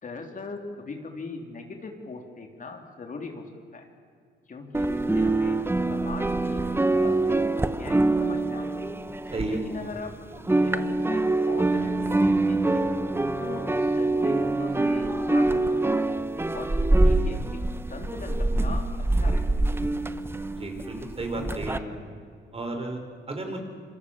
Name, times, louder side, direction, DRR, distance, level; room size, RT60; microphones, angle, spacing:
voice 1, 0.0-3.4 3.7-3.9 4.5-5.6 5.9-6.6 7.0-8.7 9.4-12.8 13.4-15.6 15.9-16.0 16.5-17.4 17.9-18.8 19.1-19.6, left 3 dB, 40° left, 3 dB, 3.6 m, -40 dB
sound 1, 4.7-10.1 10.3-21.8, right 2 dB, 10° right, 1.1 m, -25 dB
voice 2, 20.6-21.8 22.5-23.0 23.3-23.6, right 2 dB, 30° right, 4 dB, 5.1 m, -32 dB
27.5 x 24.0 x 7.4 m, 2.2 s
cardioid pair, 90°, 20 cm